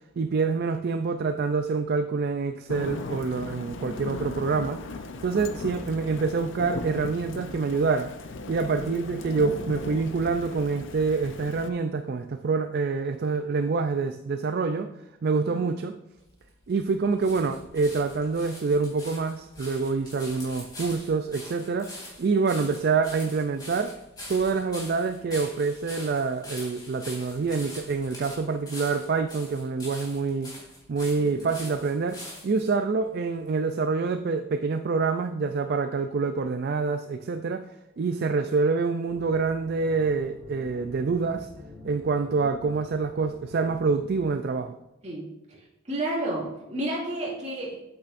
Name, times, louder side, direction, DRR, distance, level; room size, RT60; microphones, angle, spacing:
voice 1, 0.2-4.8 5.2-8.1 8.5-14.9 15.2-16.0 16.7-21.9 22.2-23.9 24.3-30.5 30.9-37.7 38.0-41.5 41.8-44.7, right 4 dB, 50° right, 8 dB, 0.4 m, -26 dB
Thunder / Rain, 2.7-11.7, left 3 dB, 60° left, 0.6 m, -37 dB
sound 1, 16.2-32.7 33.4-33.5, left 1 dB, 20° left, 2.7 m, -44 dB
voice 2, 31.2-31.5 42.4-42.6 45.0-45.6 45.8-47.8, right 1 dB, 30° right, -4 dB, 2.4 m, -32 dB
sound 2, 39.1-44.3, left 2 dB, 5° right, 2.5 m, -47 dB
8.5 x 8.1 x 2.6 m, 0.95 s
head